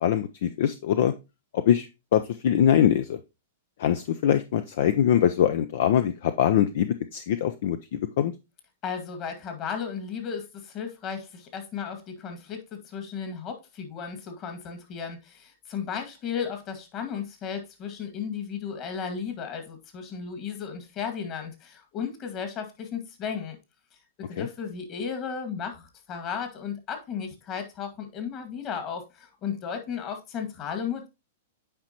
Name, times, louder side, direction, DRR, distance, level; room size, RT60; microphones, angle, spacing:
voice 1, 0.0-1.1 1.5-1.9 2.1-3.2 3.8-8.3 24.4-24.5, left 10 dB, 60° left, 0.5 m, -23 dB
voice 2, 8.8-23.6 24.2-31.1, left 7 dB, 35° left, 1.9 m, -34 dB
8.8 x 5.0 x 2.9 m
figure-of-eight pair, 105°, 0 cm